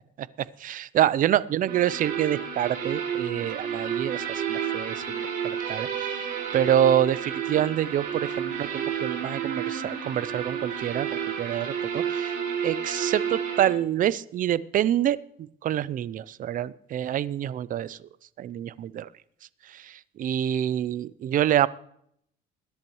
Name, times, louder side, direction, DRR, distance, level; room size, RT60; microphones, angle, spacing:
voice 1, 0.6-12.4 12.6-15.2 15.6-18.0 18.4-19.1 19.7-21.7, right 11 dB, 55° right, 18 dB, 0.6 m, -26 dB
sound 1, 1.7-13.7, right 8 dB, 75° right, 5.8 m, -31 dB
20.5 x 10.5 x 3.1 m, 0.69 s
cardioid pair, 110°, 17 cm